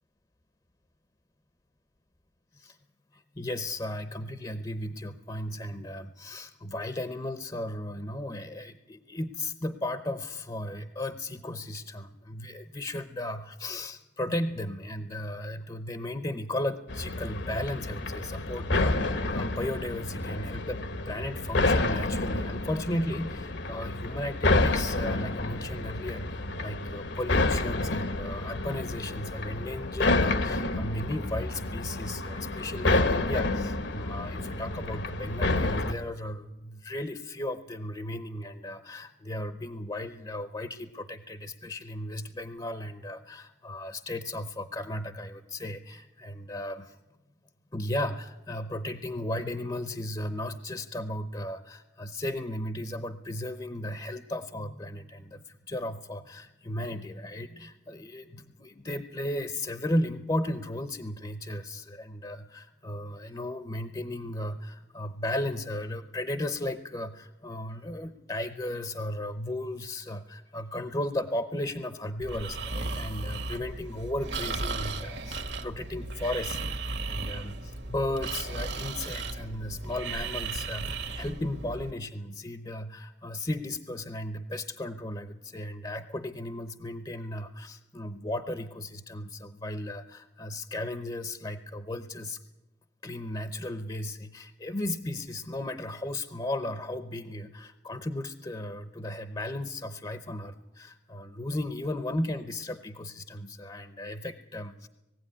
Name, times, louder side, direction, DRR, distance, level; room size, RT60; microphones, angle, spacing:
voice 1, 3.1-47.0 47.7-92.4 93.0-104.9, left 1 dB, 25° left, 10 dB, 0.8 m, -35 dB
sound 1, 16.9-35.9, left 2 dB, 70° left, 1.3 m, -29 dB
Breathing, 72.2-81.9, right 3 dB, 65° right, 1.7 m, -35 dB
20.0 x 16.0 x 9.7 m, 1.0 s
head